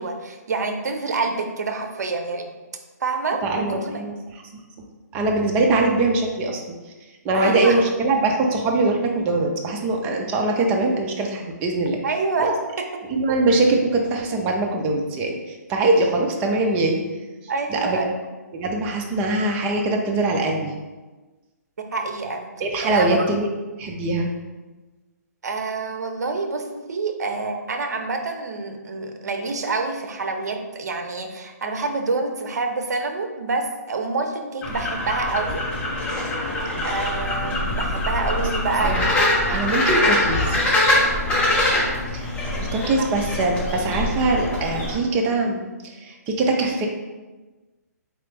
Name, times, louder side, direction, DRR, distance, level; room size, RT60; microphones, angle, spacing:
voice 1, 0.0-2.5 3.0-4.0 7.3-7.8 12.0-12.9 17.5-18.2 21.9-22.5 22.8-23.3 25.4-35.6 36.8-39.0 43.0-43.1, right 3 dB, 75° right, 5 dB, 0.6 m, -27 dB
voice 2, 3.4-4.4 5.1-6.8 7.2-12.0 12.4-12.5 13.1-17.0 17.7-18.1 18.5-20.7 22.6-24.3 38.8-39.1 39.5-40.6 42.1-42.2 42.6-46.9, right 2 dB, 15° right, 1 dB, 0.4 m, -22 dB
sound 1, 34.6-45.0, left 1 dB, 15° left, 0.9 m, -23 dB
4.1 x 3.0 x 3.3 m, 1.2 s
hypercardioid pair, 155°, 9 cm